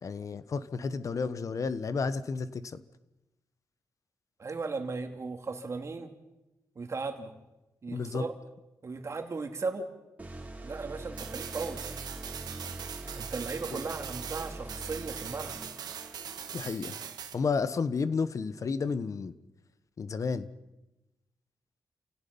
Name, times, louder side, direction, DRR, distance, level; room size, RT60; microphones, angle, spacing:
voice 1, 0.0-2.8 7.9-8.2 13.7-13.8 16.5-16.9 17.3-19.3 20.0-20.5, left 5 dB, 55° left, 14 dB, 1.2 m, -31 dB
voice 2, 4.4-6.1 6.7-7.3 7.8-8.3 8.8-9.9 10.6-11.8 13.2-15.6, right 4 dB, 45° right, 5 dB, 2.7 m, -36 dB
sound 1, 10.2-16.7, right 2 dB, 25° right, 3.5 m, -43 dB
sound 2, 11.2-17.4, right 8 dB, 80° right, 1.7 m, -41 dB
28.5 x 17.0 x 5.5 m, 0.99 s
cardioid pair, 75°, 7 cm